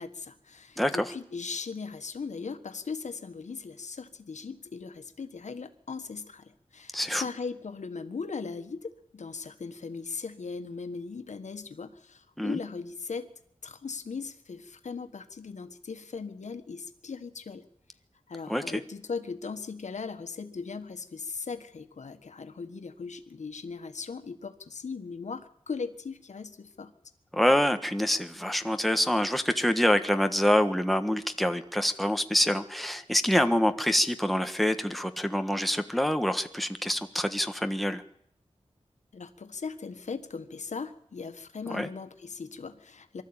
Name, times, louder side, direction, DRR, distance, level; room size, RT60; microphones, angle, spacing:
voice 1, 0.0-13.3 13.6-17.6 18.3-26.9 39.1-43.2, left 5 dB, 85° left, 8 dB, 1.6 m, -38 dB
voice 2, 0.8-1.1 6.9-7.2 12.4-12.6 18.5-18.8 27.3-38.0 41.7-41.9, equal, ahead, 8 dB, 1.4 m, -26 dB
23.5 x 13.5 x 8.9 m, 0.71 s
wide cardioid pair, 90°, 12 cm